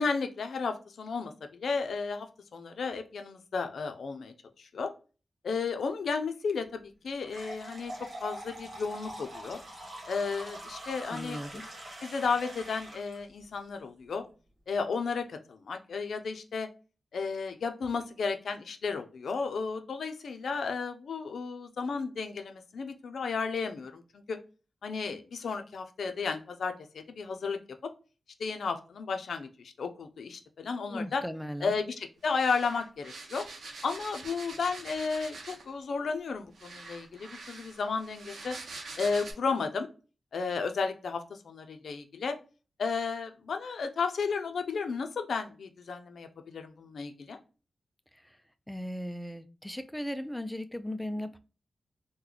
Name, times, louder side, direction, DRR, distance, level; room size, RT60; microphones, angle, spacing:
voice 1, 0.0-2.3 2.5-4.9 5.4-7.9 8.2-9.6 10.1-11.4 12.0-14.2 14.7-16.7 17.1-24.4 24.8-27.9 28.4-31.2 31.6-33.4 33.8-38.6 39.0-39.9 40.3-42.3 42.8-47.4, left 5 dB, 80° left, 7 dB, 0.4 m, -33 dB
sound 1, 7.2-13.2, right 1 dB, 50° right, 1.4 m, -44 dB
voice 2, 11.1-11.6 30.9-31.8 48.7-51.4, equal, 5° left, 9 dB, 0.3 m, -37 dB
sound 2, 32.3-35.8 36.5-39.3, right 3 dB, 85° right, 0.6 m, -45 dB
3.8 x 2.1 x 3.0 m, 0.34 s
wide cardioid pair, 125°, 0 cm